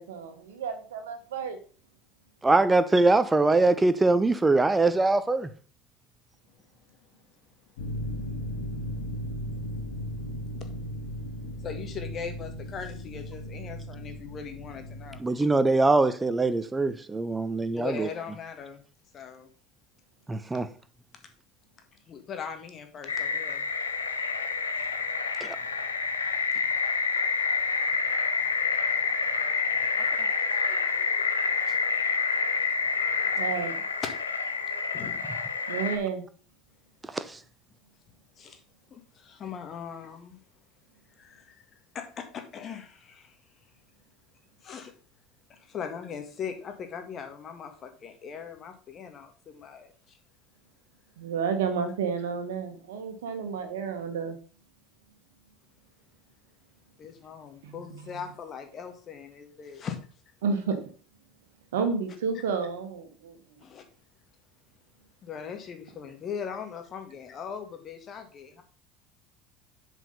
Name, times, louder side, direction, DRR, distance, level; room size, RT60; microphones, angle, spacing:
voice 1, 0.0-1.6 33.3-33.7 35.7-36.2 51.2-54.4 57.6-58.0 60.4-60.9 61.7-63.4, right 5 dB, 75° right, 1.5 m, -31 dB
voice 2, 2.4-5.5 15.2-18.1 20.3-20.7 25.4-25.6 37.3-37.4, right 2 dB, 15° right, 1.0 m, -22 dB
sound 1, 7.8-15.2, equal, 70° left, 1.7 m, -36 dB
voice 3, 11.6-15.2 17.7-18.8 19.1-19.5 22.1-23.7 26.5-26.6 30.0-31.2 31.7-31.8 34.9-35.3 38.4-38.6 38.9-40.4 41.2-41.6 41.9-43.3 44.6-44.9 45.5-49.9 57.0-60.0 63.6-63.8 65.2-68.6, left 7 dB, 40° left, 1.8 m, -40 dB
sound 2, 23.1-36.0, left 5 dB, 90° left, 0.9 m, -28 dB
7.5 x 5.0 x 5.5 m
hypercardioid pair, 70°, 0 cm